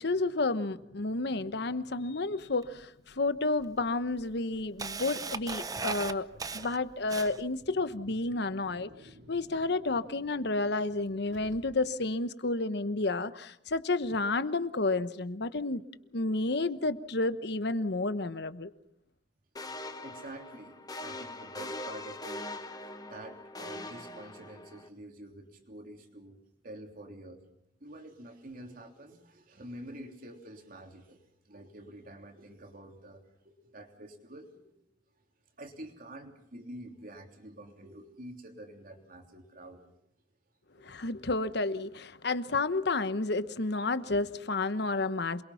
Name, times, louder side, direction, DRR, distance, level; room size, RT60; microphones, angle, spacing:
voice 1, 0.0-6.3 6.5-8.9 9.3-15.8 16.1-18.7 40.8-45.4, left 3 dB, 65° left, 1.0 m, -31 dB
Camera, 2.6-2.7 3.6-3.7 4.1-7.6, right 4 dB, 20° right, 0.8 m, -37 dB
Car, 5.6-12.1, equal, 70° right, 4.1 m, -56 dB
sound 1, 19.6-24.9, left 2 dB, 20° left, 1.4 m, -42 dB
voice 2, 19.9-22.5 23.0-26.4 26.6-27.4 27.8-35.0 35.6-39.9 40.8-41.0, right 1 dB, 50° right, 3.3 m, -48 dB
28.0 x 22.0 x 5.8 m
head